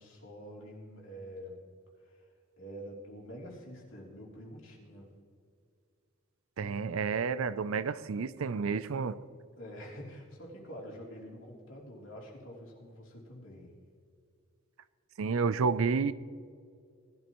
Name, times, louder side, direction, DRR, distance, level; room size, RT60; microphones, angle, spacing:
voice 1, 0.0-1.6 2.0-2.3 2.6-5.1 9.6-13.7, equal, 70° left, -3 dB, 3.3 m, -47 dB
voice 2, 6.6-9.2 15.2-16.1, right 5 dB, 85° right, 16 dB, 0.5 m, -30 dB
19.5 x 12.5 x 3.1 m, 2.3 s
head